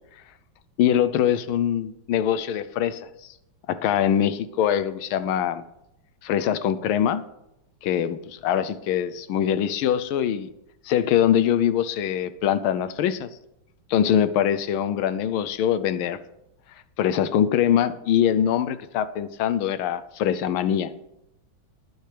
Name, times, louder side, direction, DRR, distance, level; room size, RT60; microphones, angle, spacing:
voice 1, 0.8-3.1 3.7-5.6 6.2-7.2 7.8-10.5 10.8-13.3 13.9-16.2 17.0-20.9, left 9 dB, 85° left, 14 dB, 1.5 m, -23 dB
20.0 x 8.9 x 3.4 m, 0.86 s
omnidirectional pair, 2.2 m